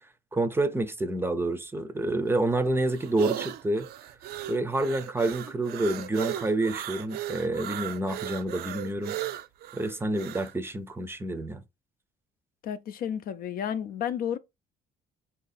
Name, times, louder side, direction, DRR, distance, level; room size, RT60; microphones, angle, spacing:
voice 1, 0.3-3.9 4.5-9.2 9.7-11.6, right 2 dB, 15° right, 0.5 m, -28 dB
sound 1, 2.3-10.5, right 12 dB, 65° right, 0.5 m, -36 dB
voice 2, 12.6-14.4, left 9 dB, 60° left, 0.5 m, -31 dB
4.7 x 2.7 x 4.0 m
cardioid pair, 110°, 17 cm